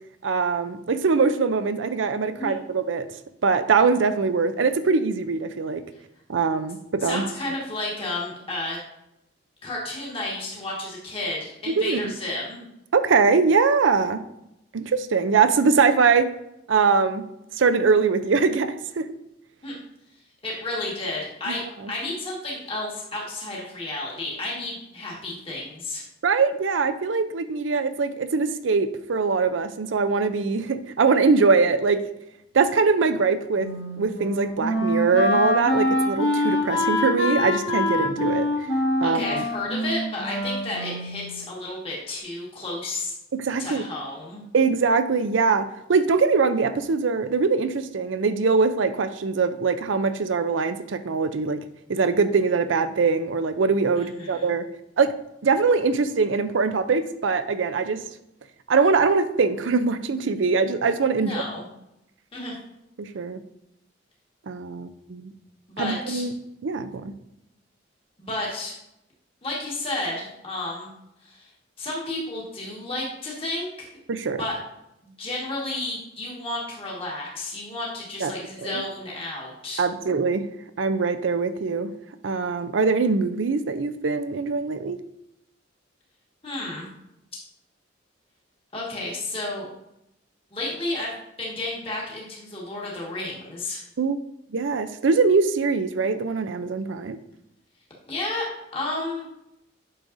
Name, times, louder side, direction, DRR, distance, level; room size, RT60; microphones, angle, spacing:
voice 1, 0.2-3.1 3.4-5.8 6.3-7.3 11.7-12.0 12.9-14.2 14.7-16.3 16.7-17.2 17.5-19.1 21.5-21.7 26.2-32.0 32.5-33.7 34.0-38.7 39.0-39.4 43.3-43.8 44.5-51.6 51.9-54.6 55.0-55.1 55.4-58.0 58.7-61.4 63.0-63.4 64.5-65.3 65.8-66.3 66.6-67.1 74.1-74.4 78.2-78.3 78.6-78.7 79.8-80.5 80.8-81.9 82.2-85.0 94.0-94.2 94.5-97.2, right 4 dB, 75° right, 11 dB, 0.5 m, -22 dB
voice 2, 7.0-8.8 9.6-12.6 19.6-19.7 20.4-26.0 39.0-43.1 43.6-44.4 53.9-54.5 61.2-61.7 62.3-62.6 65.7-66.2 68.2-68.7 69.4-70.9 71.2-71.5 71.8-73.9 74.4-74.5 75.0-79.8 86.4-86.9 88.7-89.7 90.5-91.1 91.4-93.8 98.1-99.2, left 2 dB, 30° left, -5 dB, 1.6 m, -32 dB
Wind instrument woodwind instrument, 33.6-41.4, left 1 dB, 60° left, 1.7 m, -25 dB
8.6 x 6.3 x 2.6 m, 0.84 s
head